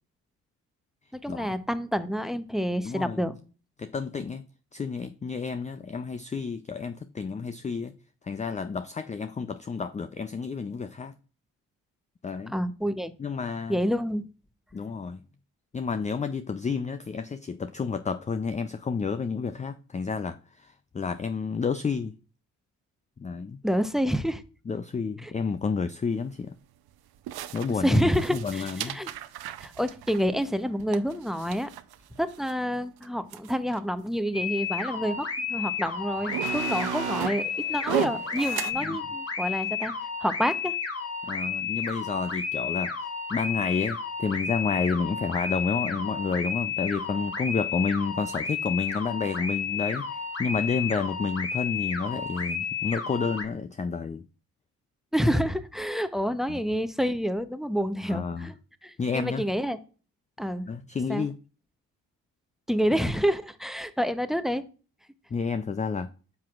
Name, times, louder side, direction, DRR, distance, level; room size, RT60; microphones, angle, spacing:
voice 1, 1.1-3.4 12.5-13.1 13.7-14.2 23.6-24.4 25.2-25.3 27.8-29.1 29.6-31.7 32.2-39.9 40.2-40.7 55.1-58.6 58.8-59.8 60.4-60.7 61.1-61.3 62.7-64.6, equal, ahead, 0.8 m, -28 dB
voice 2, 2.8-3.2 3.8-4.4 4.7-7.9 8.3-11.1 12.2-12.5 13.2-13.8 14.7-15.2 15.7-22.1 23.2-23.6 24.7-26.5 27.5-29.0 38.8-39.0 41.2-42.9 43.3-50.1 50.4-54.2 56.5-56.6 58.1-58.5 59.0-59.4 60.7-61.3 65.3-66.1, left 5 dB, 20° left, 0.4 m, -30 dB
sound 1, 26.1-26.2 27.3-32.5 33.0-33.1 33.3-33.8 34.6-34.7 35.6-35.7 36.0-38.7, right 11 dB, 65° right, 0.7 m, -35 dB
sound 2, 34.3-53.5, left 6 dB, 35° left, 1.6 m, -32 dB
9.7 x 5.9 x 2.4 m
hypercardioid pair, 45°, 40 cm